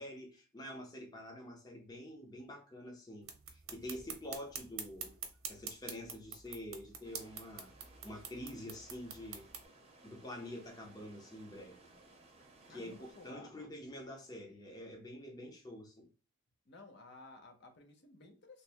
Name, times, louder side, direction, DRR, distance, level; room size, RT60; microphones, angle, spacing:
voice 1, 0.0-5.1 5.5-7.7 8.0-9.4 10.0-12.0 12.7-16.1, left 1 dB, 20° left, 0.7 m, -47 dB
sound 1, 3.2-9.6, right 7 dB, 70° right, 0.8 m, -47 dB
sound 2, 7.0-13.3, right 2 dB, 30° right, 0.7 m, -61 dB
voice 2, 12.7-13.5 16.7-18.6, left 2 dB, 50° left, 0.7 m, -55 dB
3.2 x 2.1 x 4.3 m
head